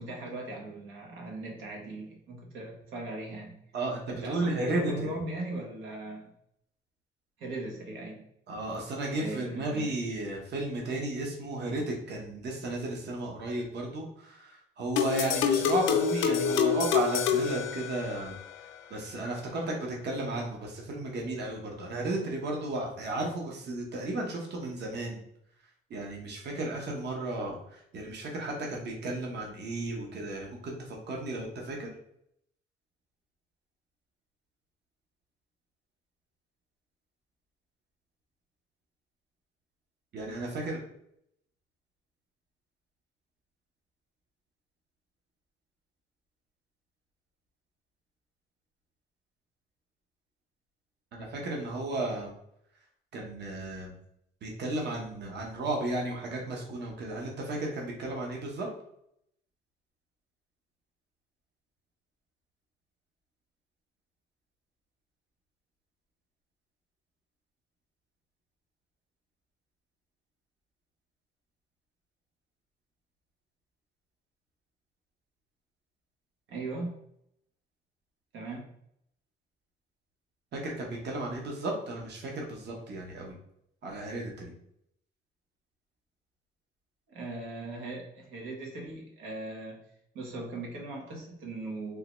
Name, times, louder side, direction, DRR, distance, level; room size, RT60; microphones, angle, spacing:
voice 1, 0.0-3.5 4.1-6.3 7.4-8.2 9.2-9.9 76.5-76.9 78.3-78.7 87.1-89.8 90.1-92.0, right 2 dB, 90° right, -1 dB, 0.9 m, -39 dB
voice 2, 3.7-5.2 8.5-18.4 18.9-25.2 25.9-31.9 40.1-40.8 51.1-52.3 53.1-54.0 54.4-58.7 80.5-83.4 83.8-84.5, right 2 dB, 60° right, 0 dB, 0.8 m, -34 dB
sound 1, 15.0-18.4, left 7 dB, 75° left, 0.5 m, -27 dB
3.6 x 2.2 x 3.0 m, 0.75 s
cardioid pair, 90°, 20 cm